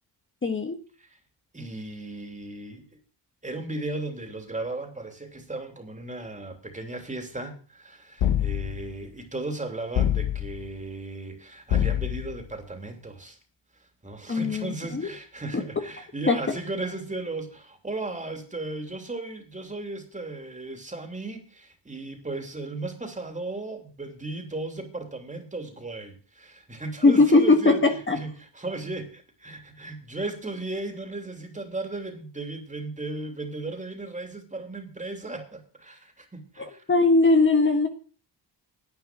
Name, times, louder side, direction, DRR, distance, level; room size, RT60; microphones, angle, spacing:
voice 1, 0.4-0.8 14.3-15.1 16.3-16.4 27.0-27.7 28.1-28.2 36.6-37.9, left 3 dB, 25° left, 5 dB, 1.5 m, -20 dB
voice 2, 1.5-2.9 3.4-13.4 14.0-27.8 28.1-36.8, right 2 dB, 15° right, 4 dB, 3.1 m, -36 dB
sound 1, 8.2-9.0 9.9-10.7 11.7-12.5, left 10 dB, 75° left, 1.5 m, -25 dB
10.5 x 9.2 x 6.2 m, 0.40 s
cardioid pair, 90°, 45 cm